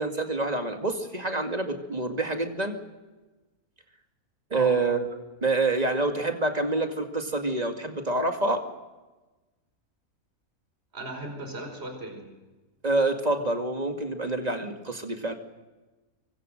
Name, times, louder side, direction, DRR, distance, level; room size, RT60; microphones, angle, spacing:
voice 1, 0.0-2.8 4.5-5.1 5.4-8.6 12.8-15.3, right 2 dB, 25° right, 4 dB, 2.3 m, -27 dB
voice 2, 10.9-12.3, right 1 dB, 45° right, 4 dB, 5.4 m, -37 dB
25.5 x 24.0 x 6.6 m, 1.2 s
omnidirectional pair, 1.5 m